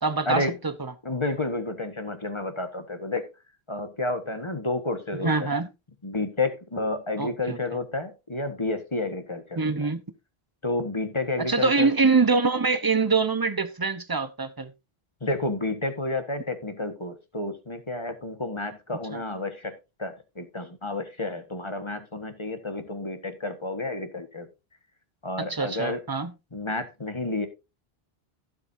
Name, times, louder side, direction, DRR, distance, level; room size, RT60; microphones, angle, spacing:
voice 1, 0.0-0.9 5.2-5.7 7.2-7.6 9.6-10.0 11.4-14.7 19.1-19.2 25.4-26.3, right 4 dB, 20° right, 0.9 m, -24 dB
voice 2, 1.0-3.3 3.7-5.5 6.0-9.9 10.6-11.9 15.2-19.7 20.0-24.5 25.2-26.0 26.5-27.5, left 2 dB, 30° left, 1.5 m, -30 dB
15.5 x 7.8 x 2.7 m
omnidirectional pair, 1.1 m